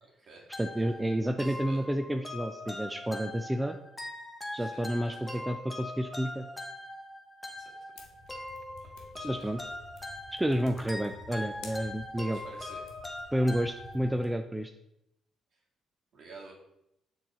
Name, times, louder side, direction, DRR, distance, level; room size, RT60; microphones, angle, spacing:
voice 1, 0.0-0.5 1.4-1.8 4.6-5.5 7.6-7.7 9.0-9.5 12.3-12.8 16.1-16.5, right 3 dB, 60° right, -2 dB, 2.1 m, -51 dB
trap bell loop, 0.5-14.3, left 1 dB, 15° left, 1.0 m, -42 dB
voice 2, 0.6-3.8 4.5-6.5 9.2-9.6 10.3-12.4 13.3-14.7, equal, 10° right, 7 dB, 0.4 m, -30 dB
sound 1, 8.0-14.2, left 5 dB, 80° left, 1.1 m, -52 dB
6.7 x 3.9 x 4.2 m, 0.82 s
cardioid pair, 90°, 0 cm